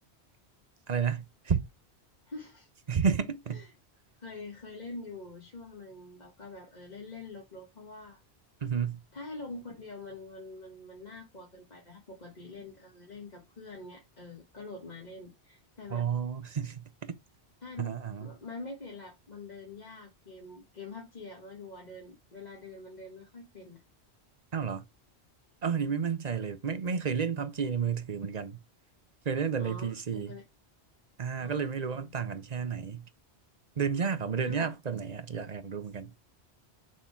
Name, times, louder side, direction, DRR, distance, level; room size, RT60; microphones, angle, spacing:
voice 1, 0.9-1.6 2.9-3.7 8.6-9.0 15.9-17.2 17.8-18.2 24.5-24.8 25.6-28.6 29.2-30.4 31.2-33.1 33.8-36.1, right 6 dB, 40° right, 0.9 m, -31 dB
voice 2, 2.2-2.7 3.5-3.7 4.2-8.2 9.1-16.1 17.6-23.8 29.6-30.4 31.3-32.1 34.4-34.7, left 3 dB, 40° left, 1.6 m, -45 dB
6.5 x 3.9 x 4.5 m
omnidirectional pair, 1.1 m